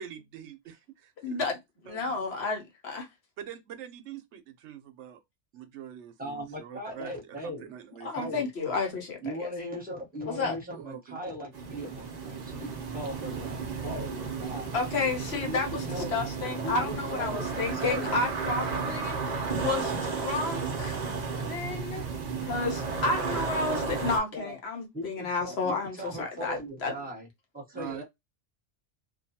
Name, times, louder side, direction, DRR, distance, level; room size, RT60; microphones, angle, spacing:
voice 1, 0.0-1.5 1.9-2.1 3.4-5.2 5.5-8.4 10.7-11.2 27.7-28.0, right 9 dB, 75° right, 0.9 m, -44 dB
voice 2, 1.2-1.6 1.9-3.1 8.0-9.5 10.3-10.5 14.7-21.0 21.4-22.0 22.4-26.9, left 3 dB, 65° left, 1.0 m, -31 dB
voice 3, 6.2-7.7 8.1-8.5 9.2-14.7 15.4-15.6 15.9-16.1 16.6-17.5 17.8-18.1 24.3-24.6 24.9-27.3 27.5-28.0, equal, 10° right, 1.0 m, -38 dB
sound 1, 11.5-24.2, right 5 dB, 45° right, 0.6 m, -33 dB
2.6 x 2.2 x 2.7 m
omnidirectional pair, 1.2 m